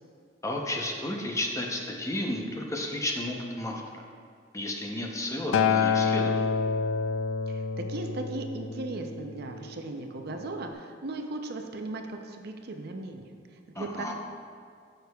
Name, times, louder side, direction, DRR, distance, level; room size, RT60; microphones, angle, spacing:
voice 1, 0.4-3.8 4.5-6.5 13.7-14.1, left 1 dB, 15° left, 1 dB, 0.7 m, -32 dB
Acoustic guitar, 5.5-9.8 10.7-10.8, left 5 dB, 75° left, 0.3 m, -28 dB
voice 2, 7.5-13.2 13.7-14.1, right 2 dB, 55° right, 4 dB, 0.6 m, -37 dB
11.0 x 6.6 x 2.3 m, 2.3 s
head